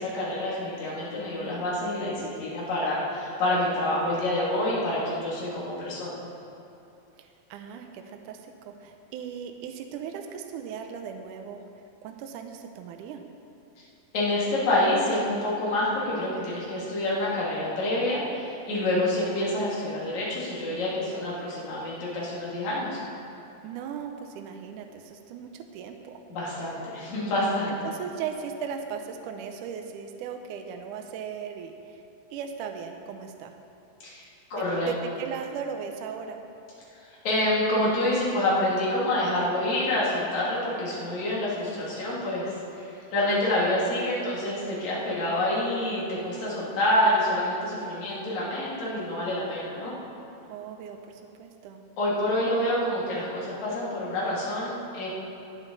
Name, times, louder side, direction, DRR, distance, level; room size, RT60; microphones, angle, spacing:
voice 1, 0.0-6.2 14.1-23.0 26.3-27.7 34.0-34.2 34.5-34.9 37.2-49.9 52.0-55.1, left 1 dB, 55° left, -7 dB, 3.7 m, -27 dB
voice 2, 7.2-11.6 12.0-13.2 23.6-26.2 27.8-32.0 32.3-33.5 34.5-36.4 50.5-51.8, right 7 dB, 75° right, 5 dB, 2.0 m, -38 dB
20.0 x 7.3 x 4.0 m, 2.8 s
omnidirectional pair, 4.2 m